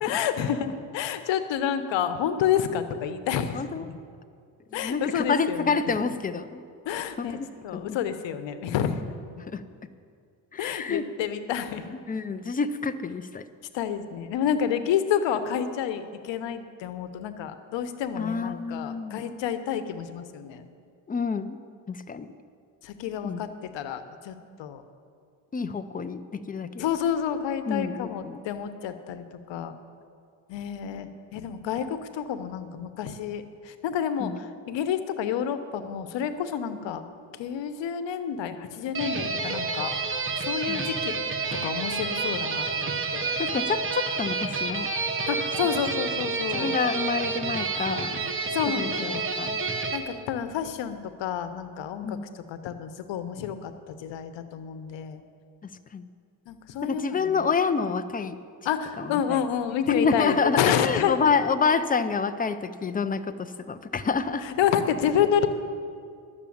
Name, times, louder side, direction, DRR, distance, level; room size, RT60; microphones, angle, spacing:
voice 1, 0.0-4.0 4.7-5.9 6.8-9.0 10.6-11.9 13.7-20.7 22.8-24.8 26.8-29.7 30.5-37.0 37.4-39.9 40.4-41.1 41.6-43.4 45.3-46.8 48.5-49.3 49.9-55.2 56.5-57.4 58.6-61.4 64.4-65.5, left 8 dB, 80° left, 9 dB, 1.0 m, -29 dB
voice 2, 3.5-3.9 4.7-6.6 7.2-7.3 7.7-8.0 9.5-9.6 10.5-11.0 12.1-13.4 18.2-19.2 21.1-21.6 21.9-22.3 23.2-23.4 25.5-26.9 27.7-28.4 34.2-34.4 40.7-40.8 43.4-44.9 46.5-48.2 48.8-49.6 52.0-52.3 55.9-56.1 56.8-58.4 59.0-59.4 59.9-64.4, left 5 dB, 20° left, 10 dB, 0.5 m, -28 dB
sound 1, 38.9-50.0, right 4 dB, 30° right, 1.1 m, -29 dB
11.5 x 7.0 x 8.6 m, 2.3 s
cardioid pair, 110°, 44 cm